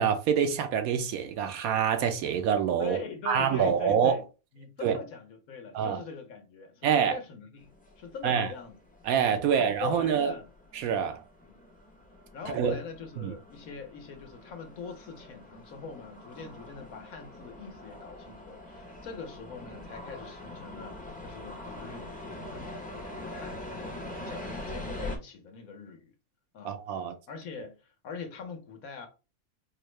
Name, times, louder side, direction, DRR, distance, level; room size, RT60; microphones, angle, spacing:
voice 1, 0.0-3.0 3.3-4.2 4.8-5.0 5.7-6.0 6.8-7.2 8.2-8.5 9.0-10.3 10.8-11.2 12.5-12.7 13.2-13.3 26.6-27.2, right 8 dB, 75° right, 1.0 m, -26 dB
voice 2, 2.8-4.2 4.5-8.8 9.4-10.5 12.3-26.1 26.5-26.8 27.3-29.1, left 5 dB, 70° left, 1.3 m, -42 dB
sound 1, 7.6-25.2, left 1 dB, 10° left, 0.5 m, -44 dB
4.5 x 2.1 x 3.1 m
omnidirectional pair, 1.6 m